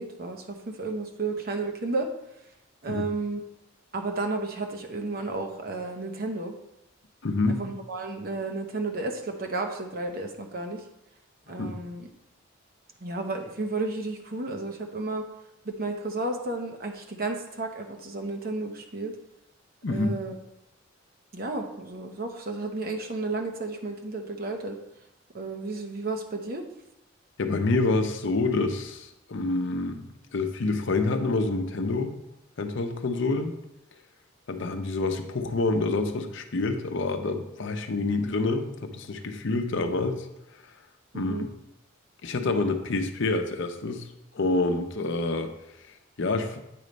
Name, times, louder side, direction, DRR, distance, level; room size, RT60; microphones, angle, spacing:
voice 1, 0.0-2.1 2.8-3.4 3.9-6.5 7.6-10.8 11.5-12.1 13.0-15.2 15.6-19.2 19.9-20.4 21.3-24.8 25.3-26.6 41.1-41.4, right 3 dB, 50° right, 4 dB, 0.9 m, -32 dB
voice 2, 7.2-7.6 11.6-11.7 19.8-20.2 27.4-32.2 32.6-33.5 34.5-40.3 41.1-41.5 42.2-44.0 44.3-45.5 45.8-46.6, left 3 dB, 65° left, 6 dB, 0.7 m, -27 dB
8.6 x 3.2 x 5.2 m, 0.87 s
head